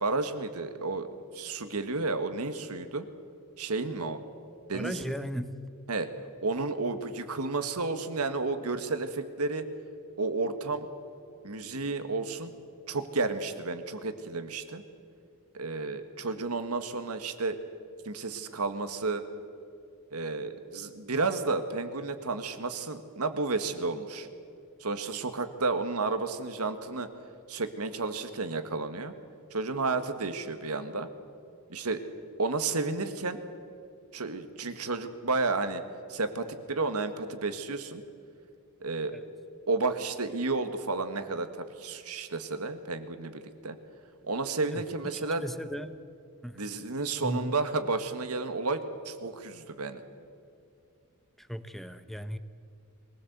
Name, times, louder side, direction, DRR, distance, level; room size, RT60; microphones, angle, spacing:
voice 1, 0.0-1.1 1.3-3.1 3.6-4.2 4.7-5.1 5.9-6.1 6.4-9.6 10.2-10.9 11.4-12.5 12.9-14.8 15.5-17.6 18.1-19.2 20.1-24.3 24.8-27.1 27.5-29.1 29.5-31.1 31.7-32.0 32.4-33.4 34.1-35.8 36.1-38.0 38.8-39.1 39.7-43.8 44.3-45.5 46.6-50.0, right 3 dB, 80° right, 9 dB, 1.7 m, -32 dB
voice 2, 4.7-5.5 39.1-39.2 44.7-44.8 45.1-45.9 46.4-46.6 47.2-47.5 51.4-52.4, equal, ahead, 11 dB, 0.9 m, -36 dB
23.0 x 17.5 x 8.1 m, 2.5 s
head